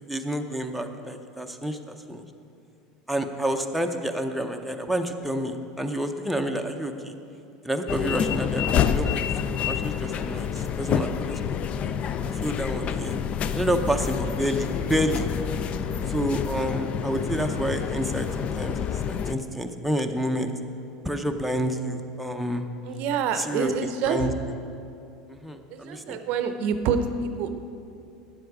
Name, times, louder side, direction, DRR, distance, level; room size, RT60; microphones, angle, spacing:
voice 1, 0.1-2.2 3.1-7.1 7.6-9.2 9.6-11.4 12.3-13.2 13.5-15.3 16.1-18.8 19.1-20.5 21.0-22.7 23.4-23.7 24.1-24.3 25.3-26.2, equal, ahead, 3 dB, 0.7 m, -29 dB
sound 1, 7.9-19.3, left 8 dB, 45° left, 0.4 m, -28 dB
voice 2, 22.8-24.3 25.7-27.5, right 6 dB, 60° right, 9 dB, 0.6 m, -27 dB
9.7 x 7.8 x 4.9 m, 2.6 s
hypercardioid pair, 85°, 3 cm